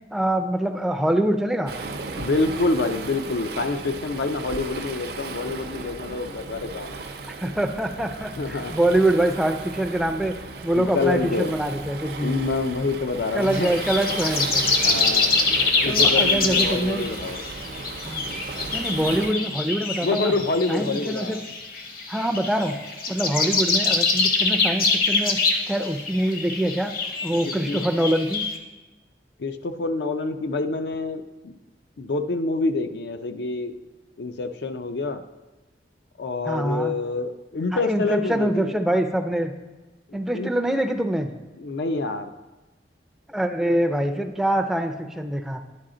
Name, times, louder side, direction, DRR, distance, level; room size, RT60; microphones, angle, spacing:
voice 1, 0.1-1.7 7.4-12.3 13.3-14.7 15.8-17.1 18.0-18.3 18.7-20.3 20.7-21.4 22.1-22.8 23.1-25.4 25.7-26.9 27.2-28.5 36.5-36.9 37.7-39.5 40.1-41.3 43.3-45.6, right 1 dB, ahead, 3 dB, 0.4 m, -24 dB
Waves surf, 1.7-19.3, right 3 dB, 55° right, 0.5 m, -35 dB
voice 2, 2.2-7.0 8.4-8.7 10.7-11.5 12.2-13.7 14.8-15.4 15.8-17.4 20.0-21.4 23.2-23.4 27.7-27.9 29.4-31.6 32.0-33.8 34.2-35.2 36.2-38.8 40.1-40.5 41.6-42.3, left 3 dB, 70° left, 9 dB, 0.5 m, -27 dB
sound 1, 13.4-28.6, left 4 dB, 50° left, 0.9 m, -25 dB
9.8 x 4.8 x 3.8 m, 1.2 s
head